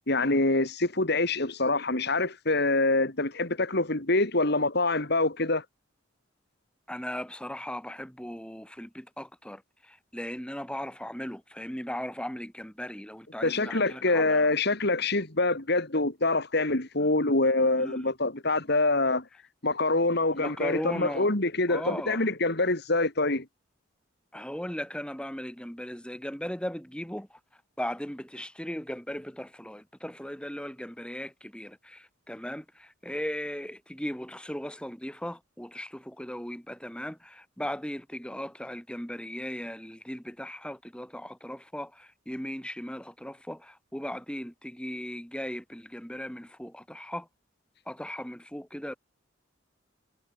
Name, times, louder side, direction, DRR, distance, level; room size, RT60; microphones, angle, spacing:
voice 1, 0.1-5.6 13.4-19.2 19.6-23.5, left 2 dB, 60° left, 3.4 m, -25 dB
voice 2, 6.9-9.6 9.9-14.5 17.7-18.1 20.4-21.3 21.7-22.2 24.3-27.3 27.8-47.3 47.9-49.0, equal, 5° left, 6.6 m, -37 dB
head